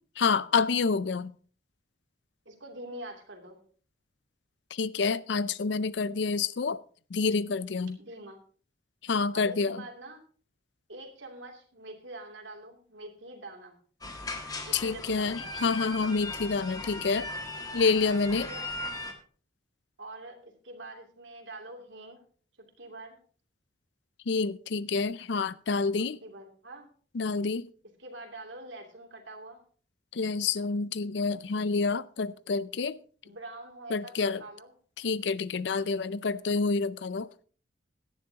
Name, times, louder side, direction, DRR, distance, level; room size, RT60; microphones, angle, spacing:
voice 1, 0.2-1.3 4.7-6.8 7.1-8.0 9.0-9.8 14.7-17.3 17.7-18.5 24.3-26.2 27.1-27.7 30.1-33.0 33.9-34.4 35.0-37.3, left 4 dB, 65° left, 0.5 m, -28 dB
voice 2, 2.4-3.6 8.0-8.4 9.3-10.2 10.9-13.8 14.6-15.6 18.4-18.7 20.0-22.2 22.8-23.2 26.0-26.9 28.0-29.6 33.2-34.1 34.4-34.7 35.7-35.8, right 2 dB, 75° right, 2.9 m, -45 dB
sound 1, 14.0-19.1, left 2 dB, 20° left, 1.5 m, -38 dB
16.5 x 11.5 x 2.9 m
head